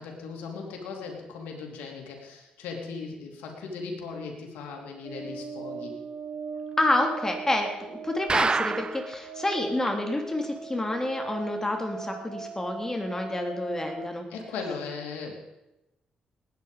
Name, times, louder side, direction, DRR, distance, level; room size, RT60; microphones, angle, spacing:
voice 1, 0.0-6.0 14.3-15.3, left 4 dB, 90° left, 1 dB, 3.0 m, -38 dB
sound 1, 5.0-14.1, right 4 dB, 70° right, 4.2 m, -40 dB
voice 2, 6.8-14.3, left 1 dB, 20° left, 3 dB, 3.3 m, -28 dB
sound 2, 8.3-9.1 9.5-9.6 9.9-10.0 10.4-10.5, right 4 dB, 35° right, 0.4 m, -26 dB
19.0 x 9.4 x 5.2 m, 0.93 s
supercardioid pair, 65°, 3 cm